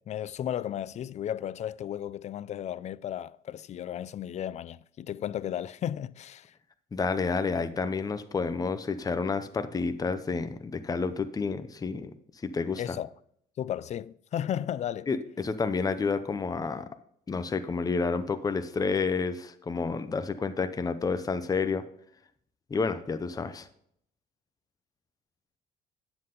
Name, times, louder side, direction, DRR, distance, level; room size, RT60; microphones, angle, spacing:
voice 1, 0.0-6.5 12.8-13.1 13.6-15.1, left 10 dB, 40° left, 0.4 m, -34 dB
voice 2, 6.9-12.8 15.1-16.9 17.3-21.8 22.7-23.7, left 4 dB, 20° left, 0.8 m, -30 dB
9.6 x 7.8 x 3.9 m
cardioid pair, 110°, 17 cm